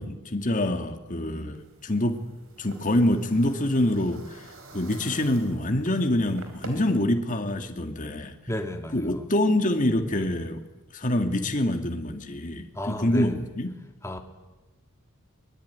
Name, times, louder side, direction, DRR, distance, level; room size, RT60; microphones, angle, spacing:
voice 1, 0.0-2.2 2.6-4.4 4.7-8.3 8.9-10.7 10.9-13.7, left 1 dB, 35° left, 5 dB, 2.1 m, -26 dB
sound 1, 1.5-6.8, right 2 dB, 60° right, 4.6 m, -47 dB
voice 2, 8.5-9.2 12.7-13.4 14.0-14.2, equal, 15° left, 5 dB, 2.4 m, -32 dB
22.5 x 22.0 x 9.6 m, 1.1 s
head